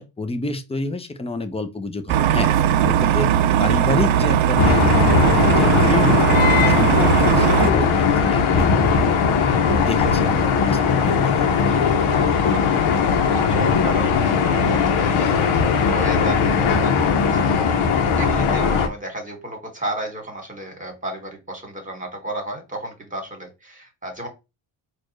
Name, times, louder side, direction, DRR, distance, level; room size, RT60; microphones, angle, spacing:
voice 1, 0.0-2.5 2.8-6.4 6.7-9.3 9.6-11.9, left 3 dB, 10° left, 0.6 m, -28 dB
sound 1, 2.1-7.7, right 10 dB, 70° right, 0.6 m, -18 dB
sound 2, 4.6-18.9, left 5 dB, 70° left, 0.9 m, -19 dB
voice 2, 13.2-24.3, right 1 dB, 15° right, 2.0 m, -33 dB
4.3 x 2.5 x 3.1 m
cardioid pair, 75°, 50 cm